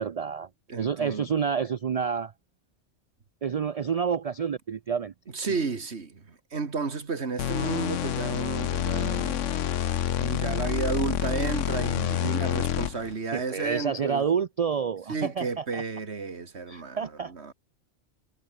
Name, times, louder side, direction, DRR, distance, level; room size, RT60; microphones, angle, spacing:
voice 1, 0.0-0.5 0.8-2.3 3.4-5.1 5.5-5.6 12.2-12.3 13.3-15.8 16.7-17.3, right 6 dB, 50° right, 0.4 m, -29 dB
voice 2, 0.7-1.3 5.3-9.4 10.2-14.2 15.1-17.0 17.3-17.5, right 4 dB, 65° right, 2.3 m, -32 dB
sound 1, 7.4-13.1, left 10 dB, 85° left, 1.2 m, -28 dB
omnidirectional pair, 1.2 m